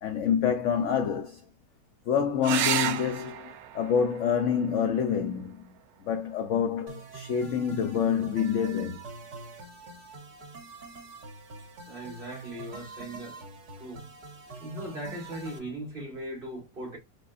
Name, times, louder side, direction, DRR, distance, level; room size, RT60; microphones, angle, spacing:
voice 1, 0.0-1.4 2.1-9.1, left 7 dB, 65° left, 0.7 m, -27 dB
sound 1, 2.4-7.4 9.3-10.0 13.4-13.5 13.9-14.0, right 10 dB, 70° right, 1.0 m, -35 dB
sound 2, 6.9-15.6, right 4 dB, 90° right, 2.4 m, -45 dB
voice 2, 11.9-13.4 13.8-14.1 14.6-17.0, right 1 dB, 30° right, 2.3 m, -39 dB
5.1 x 4.0 x 2.5 m
omnidirectional pair, 1.8 m